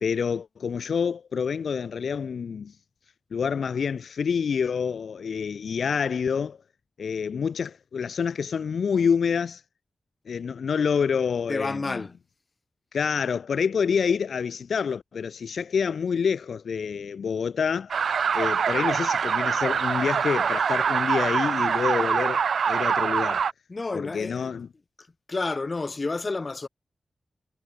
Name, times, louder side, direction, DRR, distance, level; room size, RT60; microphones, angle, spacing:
voice 1, 0.0-2.7 3.3-6.6 7.0-9.6 10.3-12.1 12.9-17.9 18.3-23.4 23.9-24.7, left 6 dB, 80° left, 1.8 m, -27 dB
voice 2, 11.5-12.1 23.7-24.5 25.3-26.7, left 3 dB, 30° left, 5.5 m, -30 dB
sound 1, 17.9-23.5, right 6 dB, 85° right, 0.6 m, -24 dB
wide cardioid pair, 160°, 0 cm